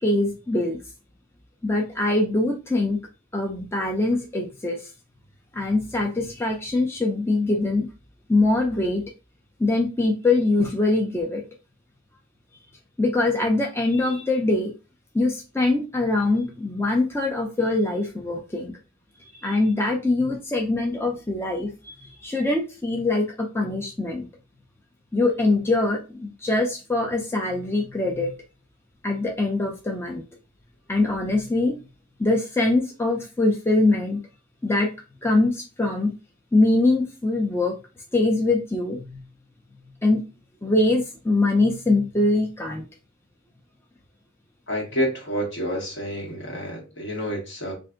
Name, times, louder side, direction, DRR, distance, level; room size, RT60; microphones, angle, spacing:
voice 1, 0.0-0.8 1.6-3.0 3.3-4.9 5.5-7.9 8.3-9.0 9.6-11.4 13.0-14.7 15.1-18.7 19.4-24.3 25.1-28.3 29.0-30.2 30.9-31.7 32.2-34.2 34.6-34.9 35.2-36.1 36.5-37.7 38.1-39.2 40.0-40.2 40.6-42.8, left 2 dB, 10° left, 0.5 m, -23 dB
voice 2, 44.7-47.7, equal, 60° left, 1.3 m, -28 dB
3.4 x 2.5 x 3.7 m
head